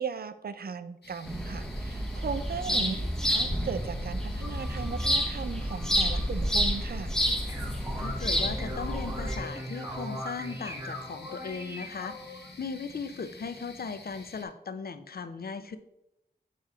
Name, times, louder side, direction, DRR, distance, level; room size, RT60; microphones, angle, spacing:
voice 1, 0.0-3.0 3.3-7.1, right 6 dB, 65° right, 12 dB, 0.5 m, -37 dB
sound 1, 1.0-14.4, left 2 dB, 85° left, 1.2 m, -50 dB
sound 2, 1.3-9.4, equal, 5° left, 0.8 m, -29 dB
voice 2, 2.7-3.1 8.0-12.2 12.6-15.8, left 5 dB, 65° left, 11 dB, 0.5 m, -38 dB
sound 3, 7.5-12.5, equal, 15° right, 1.2 m, -39 dB
6.7 x 3.1 x 5.6 m, 0.84 s
wide cardioid pair, 80°, 17 cm